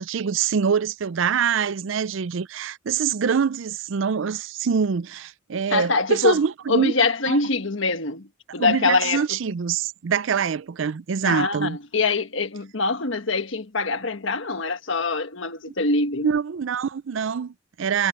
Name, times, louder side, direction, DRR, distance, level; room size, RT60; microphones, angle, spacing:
voice 1, 0.0-6.9 7.3-7.4 8.6-11.8 16.2-18.1, right 6 dB, 65° right, 0.4 m, -24 dB
voice 2, 5.7-6.4 6.7-8.3 8.5-9.2 11.2-16.3, left 3 dB, 65° left, 1.5 m, -24 dB
head